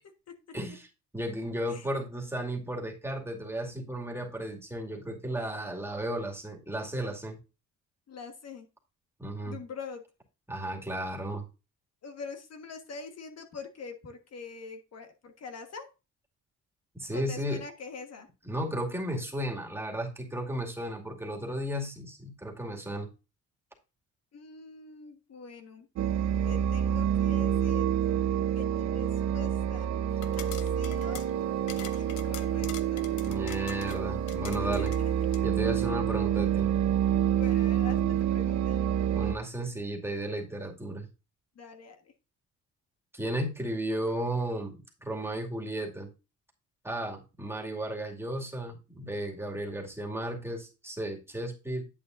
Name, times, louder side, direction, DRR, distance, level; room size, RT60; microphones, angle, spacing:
voice 1, 0.5-0.9 1.1-7.4 9.2-9.6 10.5-11.5 17.0-17.6 18.4-23.1 33.2-34.9 35.4-36.7 39.1-41.1 43.1-46.1 46.8-51.9, right 1 dB, 10° right, 0 dB, 2.3 m, -34 dB
voice 2, 8.1-8.7 9.4-10.0 12.0-15.8 17.1-18.3 24.3-25.9 26.4-28.0 28.5-29.9 30.4-31.2 32.0-33.1 34.5-35.3 37.3-38.8 41.5-42.1, left 5 dB, 55° left, 5 dB, 1.6 m, -44 dB
sound 1, 26.0-39.3, right 9 dB, 65° right, 0.8 m, -28 dB
sound 2, 30.1-35.5, left 10 dB, 80° left, 0.9 m, -45 dB
9.9 x 8.1 x 2.6 m, 0.29 s
cardioid pair, 90°, 30 cm